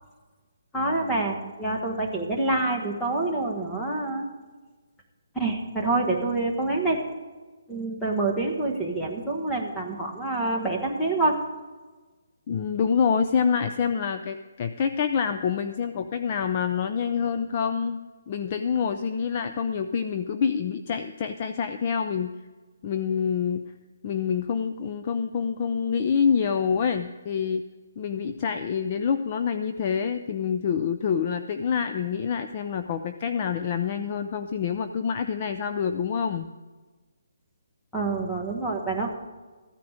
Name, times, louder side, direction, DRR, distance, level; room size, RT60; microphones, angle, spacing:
voice 1, 0.7-4.3 5.3-7.0 7.7-11.4 37.9-39.1, right 2 dB, 5° left, -3 dB, 1.3 m, -27 dB
voice 2, 12.5-18.0 18.3-22.3 22.8-23.7 24.0-27.7 28.0-36.5, left 6 dB, 25° left, 8 dB, 0.4 m, -26 dB
14.5 x 9.4 x 5.0 m, 1.3 s
hypercardioid pair, 175°, 0 cm